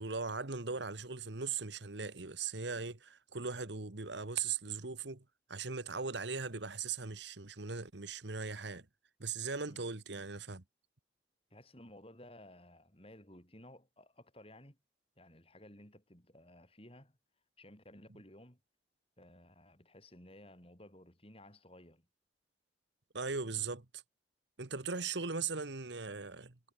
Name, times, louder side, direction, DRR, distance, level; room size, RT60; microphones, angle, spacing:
voice 1, 0.0-5.2 5.5-8.9 9.2-10.6 23.1-24.0 24.6-26.6, right 5 dB, 65° right, 1.5 m, -39 dB
voice 2, 11.5-14.8 15.2-17.2 17.6-18.6 19.2-22.1, left 1 dB, 30° left, 7.5 m, -56 dB
head